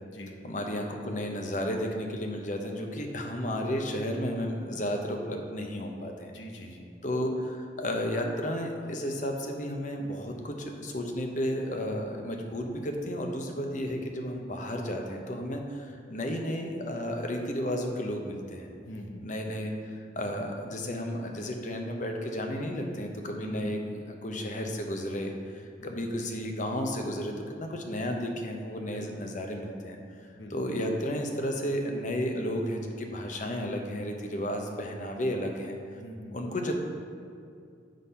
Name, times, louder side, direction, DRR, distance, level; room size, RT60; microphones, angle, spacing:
voice 1, 0.4-6.3 7.0-18.7 19.2-23.8 24.1-27.3 27.6-30.0 30.5-35.8 36.3-36.8, equal, 40° left, 3 dB, 0.7 m, -33 dB
voice 2, 6.3-6.9 18.8-19.2 23.4-23.8 25.8-26.0 28.9-29.4 30.3-30.7 36.0-36.4, equal, 90° left, 2 dB, 1.0 m, -43 dB
8.3 x 3.9 x 5.4 m, 2.3 s
head